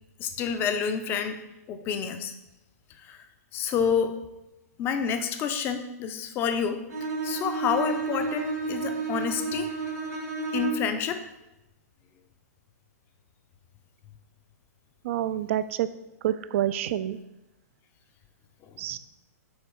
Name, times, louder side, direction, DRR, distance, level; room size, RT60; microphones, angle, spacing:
voice 1, 0.2-1.4 1.7-2.3 3.0-3.2 3.5-4.2 4.8-6.8 7.2-9.7 10.5-11.2 18.7-19.0, left 7 dB, 25° left, 9 dB, 0.5 m, -28 dB
Bowed string instrument, 6.9-11.0, right 4 dB, 85° right, 1.6 m, -31 dB
voice 2, 15.0-15.9 16.2-17.2 18.8-19.0, right 12 dB, 50° right, 14 dB, 0.3 m, -27 dB
6.4 x 3.4 x 4.6 m, 0.95 s
hypercardioid pair, 140°, 9 cm